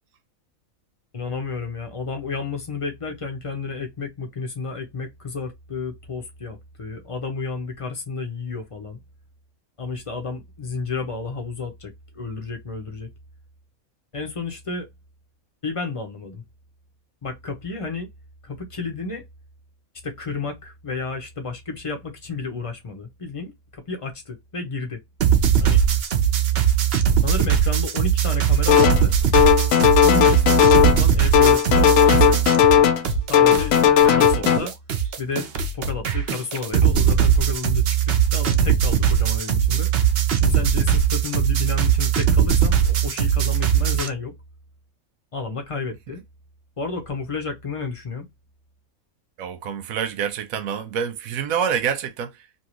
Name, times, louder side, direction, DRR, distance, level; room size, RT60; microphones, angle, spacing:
voice 1, 1.1-9.0 9.8-13.1 14.1-14.9 15.6-16.4 17.2-18.1 18.4-19.2 20.0-25.0 25.6-25.8 27.2-29.1 30.0-32.4 33.3-34.7 35.2-35.5 35.7-39.9 40.4-44.3 45.3-46.2 46.8-48.3, left 4 dB, 30° left, 0.7 m, -31 dB
sound 1, 25.2-32.8 33.0-44.1, right 8 dB, 55° right, 0.7 m, -20 dB
sound 2, 28.7-29.1 29.3-31.1 31.3-33.1 33.3-34.6, left 9 dB, 70° left, 0.9 m, -16 dB
voice 2, 49.4-52.4, right 8 dB, 80° right, 1.1 m, -26 dB
2.9 x 2.7 x 2.9 m
omnidirectional pair, 1.5 m